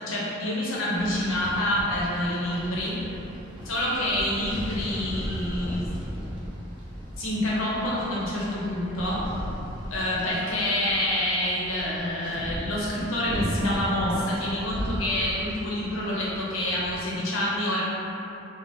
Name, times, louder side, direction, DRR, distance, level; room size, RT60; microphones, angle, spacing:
voice 1, 0.0-3.0 3.7-5.9 6.2-6.3 7.2-9.2 9.9-17.8, left 1 dB, 85° left, -6 dB, 0.7 m, -27 dB
sound 1, 0.9-17.0, equal, 25° right, 0.4 m, -36 dB
2.7 x 2.0 x 3.5 m, 3.0 s
head